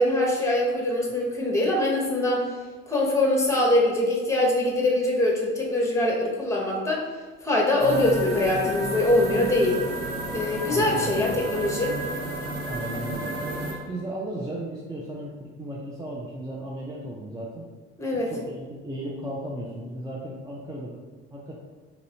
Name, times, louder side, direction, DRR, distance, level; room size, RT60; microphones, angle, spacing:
voice 1, 0.0-2.4 2.9-7.0 7.4-9.8 10.3-11.9 18.0-18.3, left 1 dB, 10° left, -1 dB, 0.9 m, -23 dB
sound 1, 7.8-13.7, right 1 dB, 30° right, 1.0 m, -32 dB
voice 2, 10.7-11.3 12.6-17.7 18.1-20.9 21.3-21.6, right 1 dB, 10° right, -4 dB, 0.5 m, -35 dB
3.9 x 2.8 x 2.8 m, 1.4 s
figure-of-eight pair, 50°, 34 cm